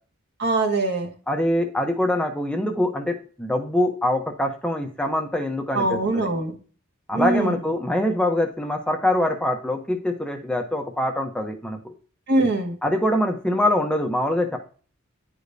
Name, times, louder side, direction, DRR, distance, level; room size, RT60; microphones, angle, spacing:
voice 1, 0.4-1.1 5.7-6.5 7.1-7.6 12.3-12.7, right 2 dB, 55° right, 2 dB, 1.7 m, -22 dB
voice 2, 1.3-6.3 7.1-11.9 12.8-14.6, left 1 dB, 5° left, 3 dB, 0.7 m, -24 dB
10.0 x 5.0 x 2.6 m, 0.40 s
head